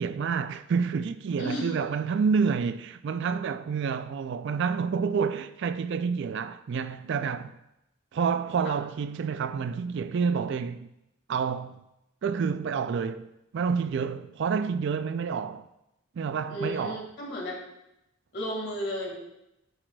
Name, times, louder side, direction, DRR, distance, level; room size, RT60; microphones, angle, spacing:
voice 1, 0.0-7.6 8.1-10.9 11.3-11.8 12.2-13.3 13.5-15.7 16.2-17.0, right 6 dB, 55° right, 0.3 m, -28 dB
voice 2, 1.4-1.7 8.6-8.7 16.5-17.6 18.3-19.2, equal, 55° left, 1.8 m, -33 dB
9.8 x 6.3 x 2.3 m
head